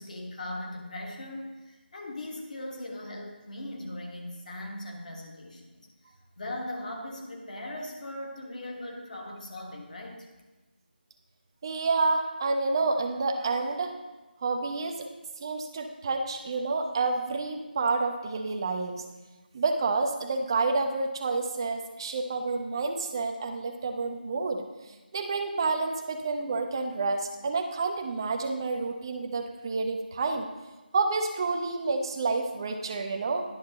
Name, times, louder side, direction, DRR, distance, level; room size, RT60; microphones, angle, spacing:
voice 1, 0.0-5.9 6.4-10.3, left 1 dB, 45° left, 1 dB, 1.4 m, -39 dB
voice 2, 11.6-13.9 14.4-15.1 15.4-19.0 19.5-30.5 30.9-33.4, right 3 dB, 25° right, 5 dB, 0.5 m, -29 dB
10.5 x 6.5 x 2.9 m, 1.1 s
figure-of-eight pair, 165°, 6 cm